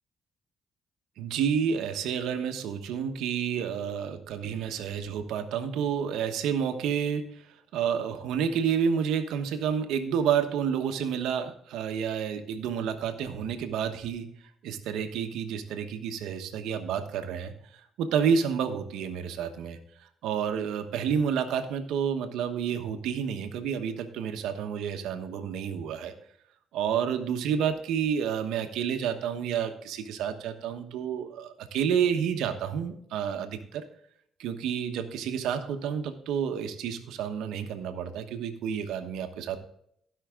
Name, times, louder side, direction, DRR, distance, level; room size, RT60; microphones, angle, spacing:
voice 1, 1.2-7.4 7.7-14.3 14.6-17.5 18.0-26.1 26.7-33.8 34.4-39.6, right 7 dB, 90° right, 7 dB, 1.1 m, -30 dB
16.0 x 5.7 x 3.7 m, 0.69 s
cardioid pair, 90°, 0 cm